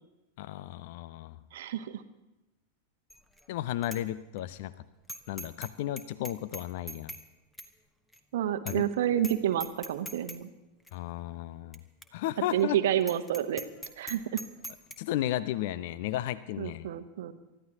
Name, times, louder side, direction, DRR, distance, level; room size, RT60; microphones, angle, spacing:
voice 1, 0.4-1.4 3.5-4.7 5.3-7.1 8.7-8.9 10.9-11.8 12.1-12.8 15.0-16.9, left 13 dB, 50° left, 17 dB, 0.5 m, -34 dB
voice 2, 1.5-2.0 8.3-10.5 12.5-13.6 14.0-14.4 16.6-17.3, right 11 dB, 55° right, 11 dB, 1.0 m, -29 dB
Bicycle bell, 3.1-3.4 3.8-4.0 4.4-4.5 5.1-5.7 6.0-7.2 7.6-7.7 8.1-8.2 8.7-8.9 9.2-9.3 9.6-10.4 10.9-11.0 11.7-11.8 12.0-12.1 12.5-12.6 13.0-15.0, equal, 5° left, 1.2 m, -41 dB
29.0 x 14.0 x 2.9 m, 1.0 s
figure-of-eight pair, 90°, 0 cm